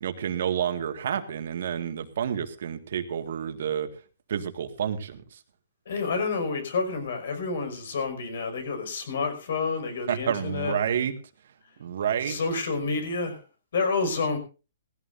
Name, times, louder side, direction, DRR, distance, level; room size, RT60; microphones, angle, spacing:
voice 1, 0.0-3.9 4.3-5.2 10.1-11.1 11.8-12.4, right 8 dB, 65° right, 8 dB, 1.9 m, -29 dB
voice 2, 5.9-10.9 12.2-13.4 13.7-14.4, left 4 dB, 70° left, 8 dB, 5.7 m, -29 dB
18.5 x 15.5 x 2.7 m, 0.32 s
hypercardioid pair, 160°, 0 cm